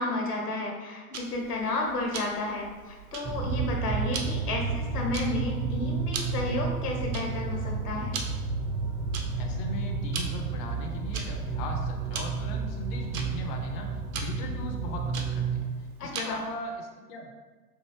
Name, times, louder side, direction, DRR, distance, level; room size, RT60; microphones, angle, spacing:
voice 1, 0.0-8.1 16.0-16.4, left 2 dB, 80° left, 1 dB, 1.1 m, -32 dB
Tick-tock, 1.1-16.6, right 5 dB, 65° right, 0.7 m, -42 dB
sound 1, 3.2-15.6, right 4 dB, 20° right, 0.5 m, -31 dB
voice 2, 9.4-17.3, left 2 dB, 35° left, 2 dB, 0.5 m, -38 dB
4.5 x 2.4 x 3.2 m, 1.3 s
hypercardioid pair, 100°, 45 cm